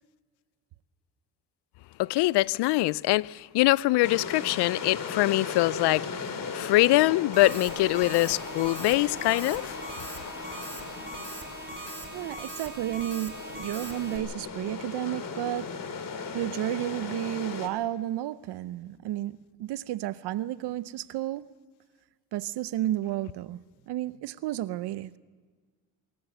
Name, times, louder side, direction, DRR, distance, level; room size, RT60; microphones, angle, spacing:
voice 1, 2.0-6.3 6.5-9.8, left 18 dB, 80° left, 0.5 m, -23 dB
sound 1, 4.0-17.7, left 5 dB, 55° left, 2.5 m, -37 dB
sound 2, 7.3-14.2, right 2 dB, 30° right, 4.9 m, -41 dB
voice 2, 11.8-15.7 16.3-21.4 22.3-23.6 23.9-25.1, right 13 dB, 80° right, 0.8 m, -32 dB
24.5 x 14.0 x 7.9 m
supercardioid pair, 65°, 40 cm